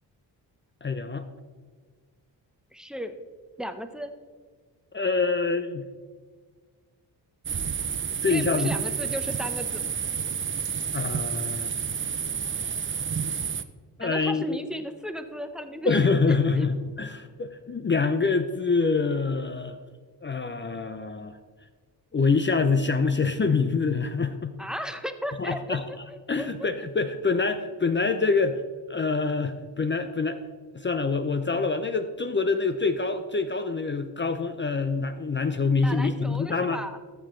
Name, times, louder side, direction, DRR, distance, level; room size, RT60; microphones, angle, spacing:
voice 1, 0.8-1.3 4.9-5.9 8.2-8.7 10.9-11.7 14.0-14.6 15.9-19.8 20.2-21.3 22.1-24.5 25.4-25.8 26.3-28.6 28.9-30.4 30.7-36.8, left 4 dB, 25° left, 9 dB, 0.6 m, -25 dB
voice 2, 2.7-3.1 3.6-4.1 8.3-9.9 14.0-16.0 16.5-16.7 24.6-26.7 35.8-37.0, equal, ahead, 8 dB, 0.8 m, -35 dB
sound 1, 7.4-13.6, right 7 dB, 30° right, 0.5 m, -30 dB
13.5 x 6.8 x 3.2 m, 1.5 s
supercardioid pair, 55°, 45 cm